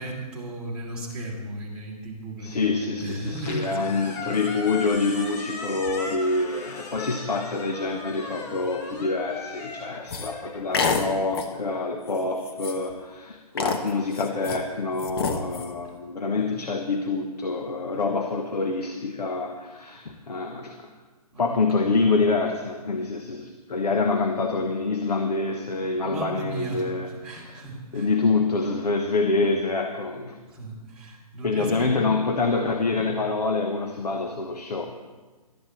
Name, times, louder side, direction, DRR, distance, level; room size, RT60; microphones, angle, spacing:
voice 1, 0.0-3.9 16.4-16.5 17.9-18.1 21.3-21.9 26.0-28.1 30.5-32.0, right 1 dB, 5° right, -8 dB, 3.0 m, -36 dB
voice 2, 2.4-20.9 21.4-27.6 27.9-30.4 31.4-34.9, left 3 dB, 80° left, 4 dB, 1.3 m, -26 dB
Squeak, 3.2-11.5, left 3 dB, 15° left, 0.9 m, -39 dB
sound 1, 10.1-10.3 10.7-11.1 11.3-11.6 12.1-12.2 12.5-12.9 13.6-14.6 15.0-15.7, left 5 dB, 40° left, 1.1 m, -27 dB
18.5 x 12.5 x 3.2 m, 1.3 s
hypercardioid pair, 150°, 20 cm